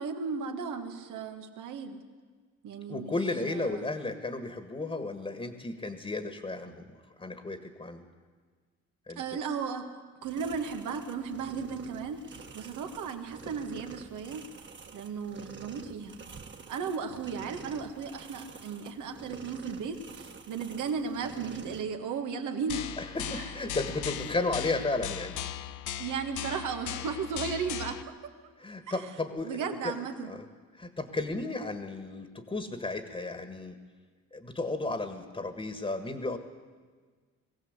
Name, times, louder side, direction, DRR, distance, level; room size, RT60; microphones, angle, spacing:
voice 1, 0.0-2.0 2.6-3.1 3.4-3.9 9.2-9.9 10.2-14.5 14.9-16.2 16.7-22.9 23.3-23.5 26.0-28.0 28.9-29.1 29.4-30.3, right 5 dB, 85° right, 4 dB, 2.0 m, -35 dB
voice 2, 2.9-8.1 9.1-9.2 23.0-25.4 28.6-30.0 30.3-30.4 30.8-33.8 34.3-36.4, left 2 dB, 20° left, 8 dB, 1.7 m, -34 dB
sound 1, 10.2-21.8, right 5 dB, 40° right, 1.8 m, -48 dB
sound 2, 22.7-28.0, left 9 dB, 75° left, 0.9 m, -38 dB
21.5 x 16.0 x 8.2 m, 1.5 s
cardioid pair, 90°, 30 cm